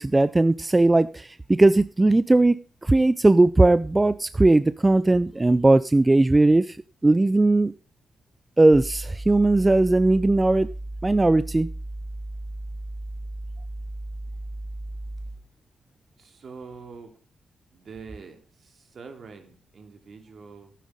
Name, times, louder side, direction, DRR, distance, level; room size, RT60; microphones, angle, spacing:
voice 1, 0.0-6.8 7.0-7.7 8.6-10.7 11.0-11.7, right 2 dB, 20° right, 0.4 m, -19 dB
sound 1, 8.7-15.5, right 1 dB, ahead, 2.5 m, -35 dB
voice 2, 16.2-17.1 17.7-20.7, right 5 dB, 60° right, 2.6 m, -44 dB
11.5 x 9.3 x 5.0 m
supercardioid pair, 55°, 0 cm